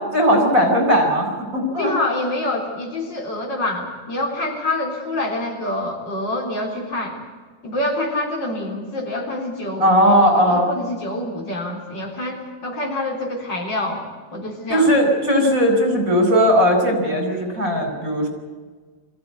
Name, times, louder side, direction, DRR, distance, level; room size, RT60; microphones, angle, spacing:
voice 1, 0.1-1.9 9.8-10.7 14.7-18.3, equal, 45° right, 4 dB, 5.0 m, -17 dB
voice 2, 1.8-7.2 7.6-9.9 10.5-14.0 14.3-15.0, left 2 dB, 70° left, 1 dB, 4.4 m, -26 dB
22.5 x 15.5 x 9.6 m, 1.4 s
omnidirectional pair, 2.0 m